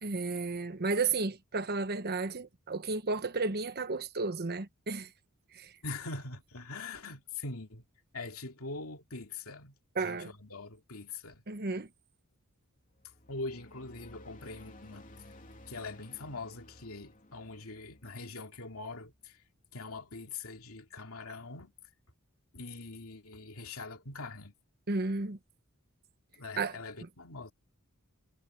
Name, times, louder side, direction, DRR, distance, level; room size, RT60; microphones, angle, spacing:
voice 1, 0.0-5.1 5.5-5.7 9.9-10.3 11.5-11.9 24.9-25.4 26.6-27.1, right 3 dB, 45° right, 1.1 m, -33 dB
voice 2, 5.8-7.9 8.1-11.4 13.3-15.1 15.7-19.4 19.7-21.7 22.5-24.5 26.4-27.5, left 3 dB, 70° left, 2.8 m, -43 dB
sound 1, 12.8-19.5, left 1 dB, 40° left, 3.2 m, -55 dB
head